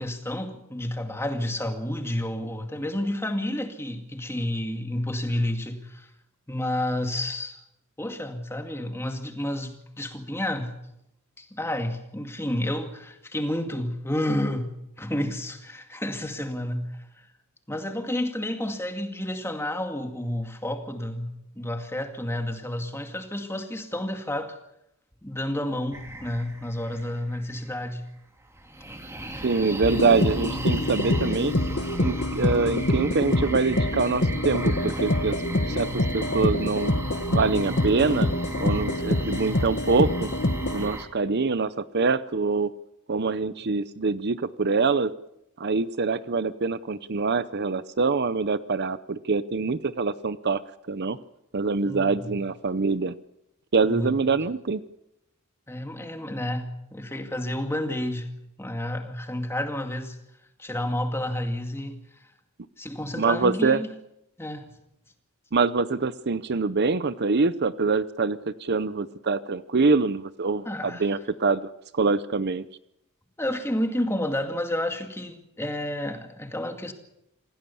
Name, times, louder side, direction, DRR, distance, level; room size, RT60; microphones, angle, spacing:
voice 1, 0.0-6.1 6.5-7.6 8.0-10.7 11.4-14.7 15.0-16.9 17.2-17.3 17.7-24.6 25.2-28.0 51.9-52.3 53.9-54.2 55.7-58.3 58.6-60.2 60.6-62.0 62.8-63.9 64.4-64.7 70.7-71.1 73.4-76.9, left 1 dB, 10° left, 2.2 m, -30 dB
sound 1, 25.9-28.1 28.4-41.0, right 1 dB, 15° right, 2.9 m, -37 dB
voice 2, 29.4-31.5 32.0-35.4 35.7-36.9 37.3-38.3 38.6-40.3 40.7-42.7 43.1-45.1 45.6-50.6 50.9-51.2 51.5-53.1 53.7-54.8 63.1-63.8 65.5-72.6, right 4 dB, 50° right, 0.7 m, -24 dB
sound 2, 29.8-40.9, left 1 dB, 50° left, 1.5 m, -26 dB
27.0 x 16.5 x 7.1 m
head